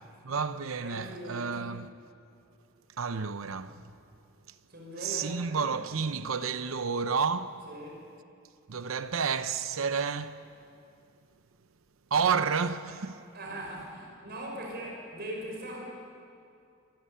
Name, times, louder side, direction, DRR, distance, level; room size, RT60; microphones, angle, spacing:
voice 1, 0.2-1.9 3.0-3.8 5.0-7.6 8.7-10.4 12.1-13.2, right 5 dB, 85° right, 0.7 m, -30 dB
voice 2, 0.8-1.6 4.7-5.7 7.7-8.1 13.3-15.8, right 1 dB, 55° right, 5.7 m, -40 dB
26.0 x 13.0 x 9.9 m
head